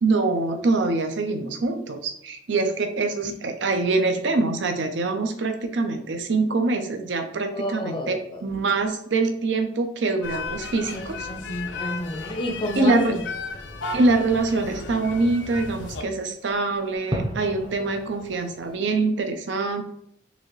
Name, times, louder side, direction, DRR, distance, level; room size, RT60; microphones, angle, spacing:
voice 1, 0.0-11.3 12.8-13.2 13.9-19.8, right 3 dB, 75° right, 6 dB, 0.5 m, -24 dB
voice 2, 7.5-8.4 10.9-13.2, equal, 25° left, 3 dB, 0.5 m, -30 dB
sound 1, 10.2-16.0, left 3 dB, 75° left, 0.5 m, -35 dB
Fireworks, 13.4-18.8, right 1 dB, 25° right, 0.6 m, -37 dB
4.0 x 2.8 x 3.0 m, 0.69 s
head